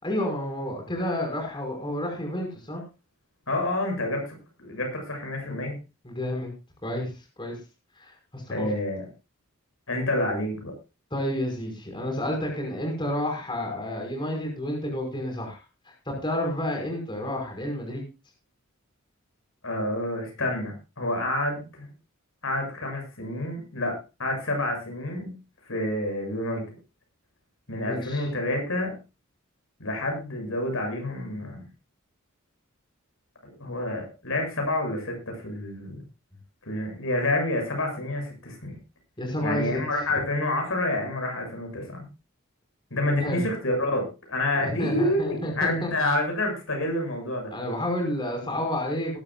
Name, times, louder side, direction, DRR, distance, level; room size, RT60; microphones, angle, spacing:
voice 1, 0.0-2.8 6.0-6.5 6.8-7.1 7.4-7.6 8.0-8.7 11.1-15.6 16.1-18.0 27.8-28.3 39.2-39.8 43.2-43.4 44.5-45.9 47.5-49.2, left 1 dB, 25° left, 1 dB, 5.3 m, -30 dB
voice 2, 3.5-5.7 8.5-9.1 9.9-10.7 19.6-21.9 22.4-25.3 25.7-26.8 27.7-29.0 29.8-31.6 33.4-36.0 36.7-38.7 39.4-42.0 42.9-47.5, left 1 dB, 75° left, 3 dB, 7.5 m, -28 dB
20.5 x 12.0 x 2.4 m, 0.29 s
head